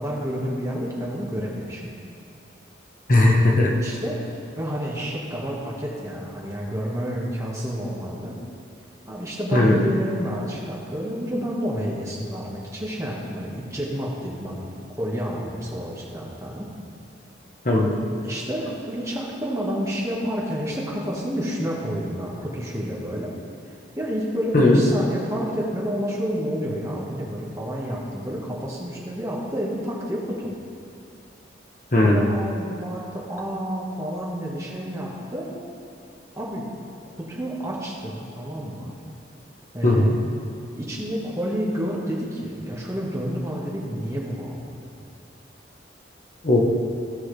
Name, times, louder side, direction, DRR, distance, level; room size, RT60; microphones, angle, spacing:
voice 1, 0.0-1.8 3.7-4.2 4.6-8.3 9.0-14.6 15.0-16.7 18.2-23.3 23.9-30.5 32.0-35.5 36.3-36.6 37.2-38.9 39.7-40.1 40.7-44.8, equal, 15° right, -4 dB, 1.4 m, -29 dB
voice 2, 3.1-3.7 9.5-9.8 17.6-17.9 24.5-24.8 31.9-32.2 39.8-40.2 46.4-46.6, left 2 dB, 45° left, -1 dB, 1.1 m, -17 dB
16.0 x 5.6 x 3.3 m, 2.7 s
head